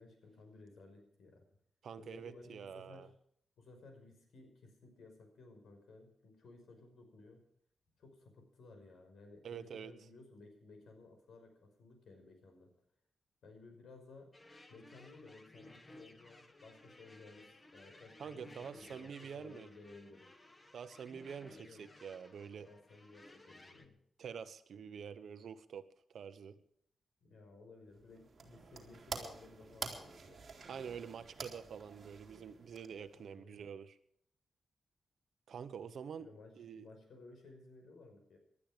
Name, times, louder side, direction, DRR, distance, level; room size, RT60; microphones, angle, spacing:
voice 1, 0.0-1.5 2.0-3.1 3.6-7.4 8.0-12.7 13.4-14.3 14.7-20.3 21.5-21.9 22.6-24.0 27.2-30.4 33.1-33.6 36.2-38.4, left 3 dB, 75° left, 5 dB, 5.4 m, -57 dB
voice 2, 1.8-3.1 9.4-9.9 18.2-19.7 20.7-22.7 24.2-25.8 26.1-26.5 30.7-34.0 35.5-36.3 36.6-36.9, right 7 dB, 70° right, 12 dB, 1.1 m, -47 dB
sound 1, 14.3-23.8, left 1 dB, 20° left, 1.4 m, -58 dB
sound 2, 27.9-33.3, right 4 dB, 45° right, 3.2 m, -48 dB
19.0 x 12.5 x 5.1 m, 0.66 s
wide cardioid pair, 120°, 0 cm